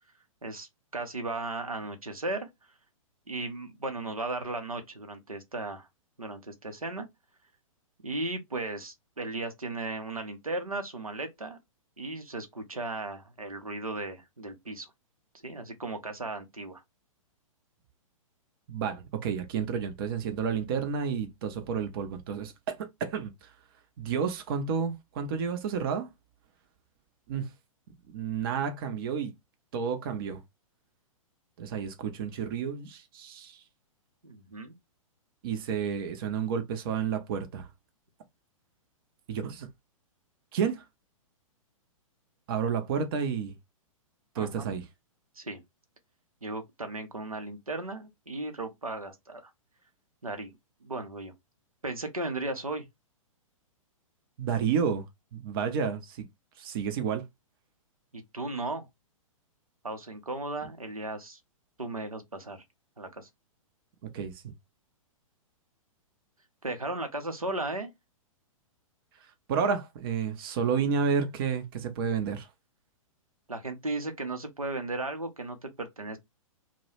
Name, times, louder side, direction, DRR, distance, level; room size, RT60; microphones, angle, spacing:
voice 1, 0.4-2.5 3.3-5.9 6.2-7.1 8.0-11.6 12.0-14.9 15.4-16.8 34.2-34.7 44.3-44.7 45.4-45.6 46.4-49.5 50.2-50.5 50.8-51.3 51.8-52.8 58.1-58.9 59.8-61.4 61.8-62.6 63.0-63.3 66.6-67.9 73.5-76.2, right 2 dB, 90° right, 0.6 m, -36 dB
voice 2, 18.7-23.5 24.0-26.1 27.3-27.5 28.1-29.3 29.7-30.4 31.6-33.6 35.4-37.7 39.3-39.7 40.5-40.8 42.5-43.5 44.4-44.8 54.4-55.1 55.3-56.3 56.6-57.2 64.1-64.5 69.5-72.5, right 6 dB, 40° right, 0.5 m, -31 dB
2.2 x 2.0 x 2.9 m
figure-of-eight pair, 110°, 18 cm